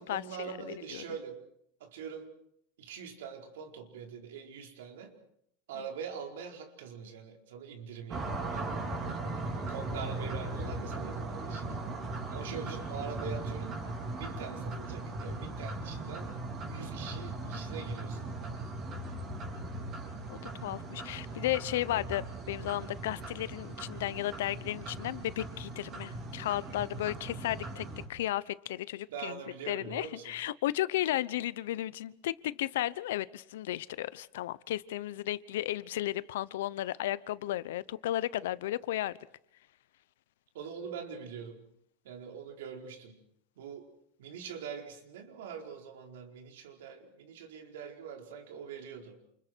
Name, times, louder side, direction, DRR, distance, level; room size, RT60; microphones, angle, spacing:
voice 1, 0.0-1.4 1.8-2.3 2.8-5.2 5.7-8.6 9.6-11.7 12.3-13.8 14.1-16.4 16.7-18.5 29.1-30.3 40.5-41.6 42.0-43.2 43.6-43.9 44.2-49.2, right 7 dB, 85° right, 3 dB, 4.7 m, -43 dB
sound 1, 8.1-28.0, right 2 dB, 25° right, 4.4 m, -39 dB
voice 2, 20.3-29.4 29.7-39.2, left 14 dB, 80° left, 18 dB, 0.9 m, -34 dB
29.0 x 28.0 x 4.7 m, 0.69 s
supercardioid pair, 175°, 0 cm